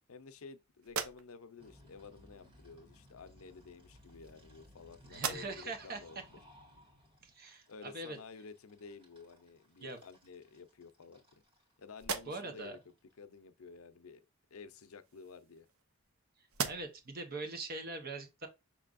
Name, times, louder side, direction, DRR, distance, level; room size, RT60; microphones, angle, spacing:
voice 1, 0.1-6.2 7.7-11.4 11.8-12.8 13.2-14.2 14.5-15.7, left 4 dB, 75° left, 0.6 m, -52 dB
Throwing the notepad on to wood chair, 0.8-1.7 2.8-3.0 3.9-4.8 5.1-5.8 6.3-6.4 9.1-9.2 9.6-10.3 10.9-11.6 11.9-12.7 14.7-16.1 16.5-17.2, right 5 dB, 75° right, 0.7 m, -42 dB
Creepy sighing computer keyboard, 1.6-13.1, left 1 dB, 25° right, 2.0 m, -61 dB
voice 2, 5.1-6.0 7.2-8.2 9.8-10.0 12.3-12.8 16.7-18.5, right 2 dB, 45° right, 1.0 m, -42 dB
6.1 x 3.3 x 2.4 m
head